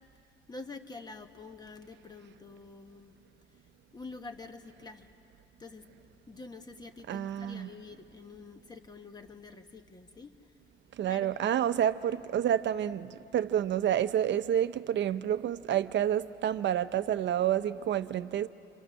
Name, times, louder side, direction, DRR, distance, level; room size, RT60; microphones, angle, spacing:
voice 1, 0.5-3.1 3.9-5.1 5.6-5.9 6.3-10.5 11.1-11.7, left 3 dB, 20° left, 1.2 m, -47 dB
voice 2, 7.1-7.7 10.9-18.5, right 10 dB, 60° right, 0.7 m, -29 dB
29.0 x 27.0 x 6.4 m
cardioid pair, 135°, 21 cm